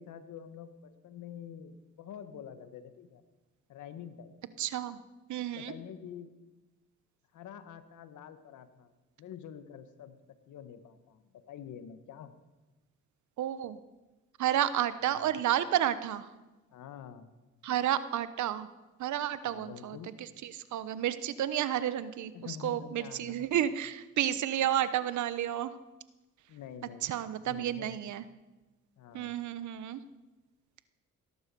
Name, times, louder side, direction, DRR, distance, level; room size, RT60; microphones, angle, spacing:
voice 1, 0.0-3.2 3.7-4.3 5.5-6.3 7.3-8.9 9.2-10.2 10.5-12.3 15.0-15.4 16.7-17.3 19.4-20.1 22.3-23.7 26.5-27.1 27.4-28.0 29.0-29.3, left 8 dB, 75° left, 10 dB, 1.6 m, -47 dB
voice 2, 4.6-5.0 5.3-5.7 13.4-13.8 14.4-16.3 17.6-18.7 19.0-20.0 20.4-22.3 22.6-25.7 27.0-28.2 29.1-30.0, right 11 dB, 75° right, 14 dB, 1.1 m, -31 dB
18.0 x 11.5 x 6.9 m, 1.1 s
cardioid pair, 90°, 30 cm